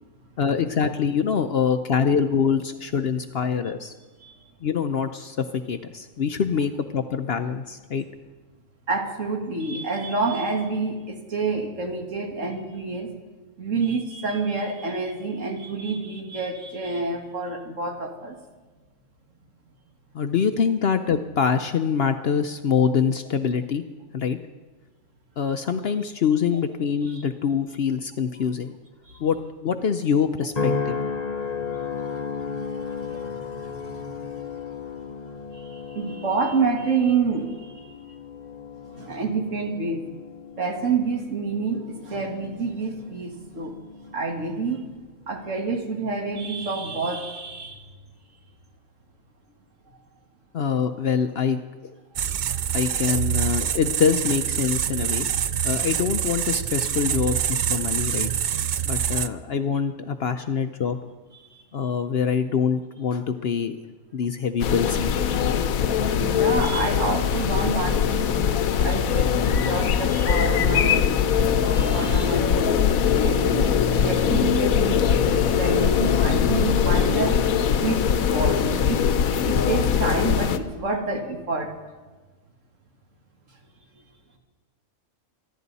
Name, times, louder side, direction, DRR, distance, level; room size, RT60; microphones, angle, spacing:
voice 1, 0.4-3.9 4.6-8.0 20.1-23.8 24.1-24.4 25.4-28.8 29.2-31.0 50.5-51.9 52.7-55.3 55.6-58.3 58.8-61.0 61.7-63.8 64.1-65.2, left 6 dB, 55° left, 9 dB, 0.8 m, -24 dB
voice 2, 8.9-13.1 13.6-18.3 27.1-27.2 29.1-29.2 32.0-32.2 32.6-34.4 35.5-38.2 38.9-40.1 40.6-43.8 44.1-44.8 45.3-47.9 52.5-52.6 61.5-61.6 66.2-68.2 68.8-71.1 71.4-72.7 73.2-77.4 77.8-79.0 79.4-81.7, right 4 dB, 65° right, 2 dB, 2.2 m, -28 dB
sound 1, 30.6-45.0 45.6-46.0, left 5 dB, 35° left, 1.0 m, -34 dB
sound 2, 52.2-59.3, right 9 dB, 90° right, 0.4 m, -25 dB
sound 3, 64.6-80.6, left 7 dB, 85° left, 1.2 m, -21 dB
25.0 x 11.0 x 4.1 m, 1.3 s
omnidirectional pair, 1.4 m